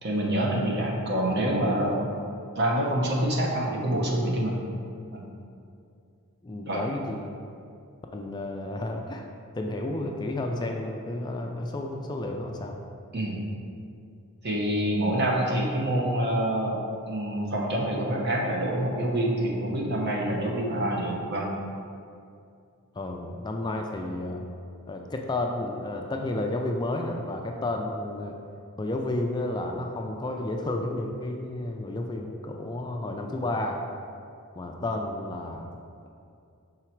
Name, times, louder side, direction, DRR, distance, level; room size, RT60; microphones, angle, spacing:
voice 1, 0.0-2.1 2.6-4.6 5.1-5.3 6.7-6.8 13.1-13.4 14.4-16.8 17.1-21.5, right 1 dB, 50° right, -2 dB, 1.0 m, -26 dB
voice 2, 6.4-7.3 8.1-9.2 9.5-12.9 22.9-24.4 24.9-28.4 28.8-33.8 34.6-35.6, left 2 dB, 20° left, 2 dB, 0.3 m, -31 dB
5.9 x 3.9 x 4.5 m, 2.4 s
head